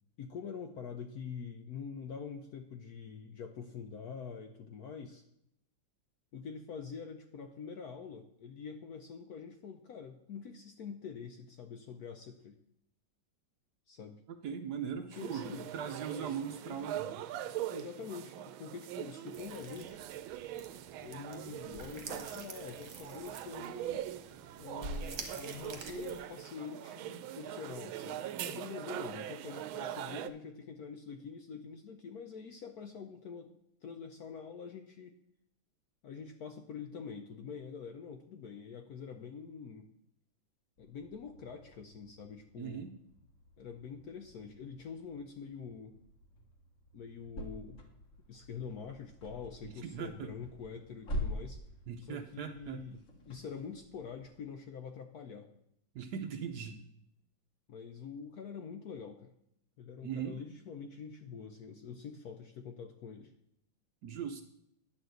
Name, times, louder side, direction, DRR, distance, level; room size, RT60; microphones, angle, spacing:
voice 1, 0.2-5.2 6.3-12.6 13.9-14.2 15.0-15.7 16.2-16.3 16.6-16.9 17.7-20.0 21.0-24.0 24.6-33.5 33.8-35.1 36.0-39.9 40.8-42.9 43.6-45.9 46.9-47.9 48.3-51.6 52.0-53.0 53.3-55.5 57.7-59.3 59.8-63.3, left 6 dB, 70° left, 6 dB, 0.9 m, -45 dB
voice 2, 14.3-17.2 42.6-42.9 49.6-50.3 51.9-53.0 55.9-56.8 60.0-60.4 64.0-64.4, right 7 dB, 70° right, 7 dB, 1.0 m, -40 dB
sound 1, 15.1-30.3, right 12 dB, 85° right, 1.4 m, -42 dB
sound 2, 19.3-26.2, right 3 dB, 50° right, 1.4 m, -47 dB
sound 3, 40.8-54.3, equal, 45° left, 1.6 m, -46 dB
10.0 x 4.4 x 7.8 m, 0.76 s
omnidirectional pair, 2.2 m